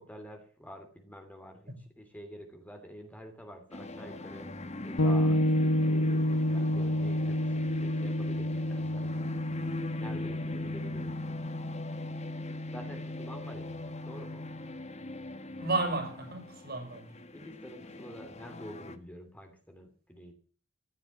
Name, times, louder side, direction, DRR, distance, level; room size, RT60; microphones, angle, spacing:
voice 1, 0.0-4.5 4.8-9.3 10.0-11.4 12.7-14.5 17.3-20.3, equal, 10° left, 2.9 m, -48 dB
sound 1, 3.7-19.0, left 2 dB, 35° left, 1.5 m, -42 dB
sound 2, 5.0-14.7, left 1 dB, 90° left, 0.9 m, -30 dB
voice 2, 15.6-17.1, right 3 dB, 55° right, 5.7 m, -32 dB
15.0 x 12.0 x 7.3 m
head